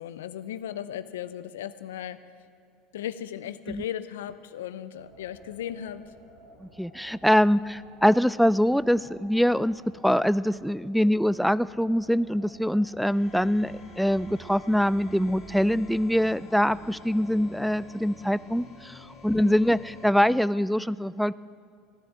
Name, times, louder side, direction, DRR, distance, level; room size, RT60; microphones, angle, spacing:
voice 1, 0.0-2.2 2.9-6.0 19.3-19.6, left 10 dB, 85° left, 14 dB, 0.6 m, -36 dB
sound 1, 5.0-17.8, right 1 dB, 85° right, 3.6 m, -53 dB
voice 2, 6.6-21.3, equal, ahead, 18 dB, 0.3 m, -24 dB
sound 2, 13.1-20.1, left 1 dB, 55° left, 3.2 m, -48 dB
15.0 x 10.5 x 7.5 m, 2.5 s
hypercardioid pair, 90°, 0 cm